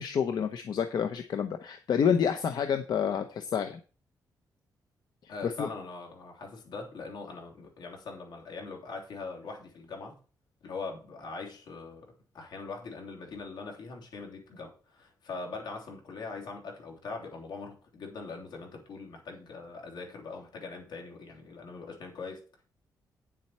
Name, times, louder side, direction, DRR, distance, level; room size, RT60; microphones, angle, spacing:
voice 1, 0.0-3.8 5.2-5.7, left 7 dB, 65° left, 0.9 m, -29 dB
voice 2, 5.3-10.2 10.6-22.6, left 4 dB, 85° left, 3.2 m, -42 dB
9.6 x 7.6 x 4.4 m
cardioid pair, 115°, 7 cm